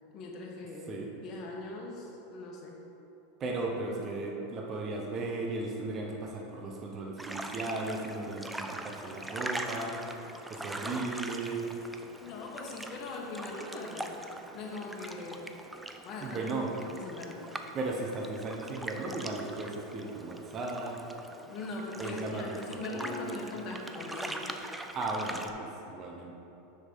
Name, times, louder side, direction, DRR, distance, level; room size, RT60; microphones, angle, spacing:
voice 1, 0.1-1.0 1.2-2.8 10.8-11.1 12.2-14.2 14.5-15.5 16.0-16.4 16.8-17.5 21.5-24.6, left 3 dB, 45° left, -2 dB, 1.5 m, -41 dB
voice 2, 3.4-10.0 10.5-11.7 16.2-16.7 17.7-21.0 22.0-23.3 24.9-26.3, right 2 dB, 35° right, 0 dB, 0.9 m, -36 dB
sound 1, 7.2-25.5, right 1 dB, 10° right, 0.5 m, -42 dB
7.1 x 6.1 x 4.1 m, 3.0 s
hypercardioid pair, 100°, 0 cm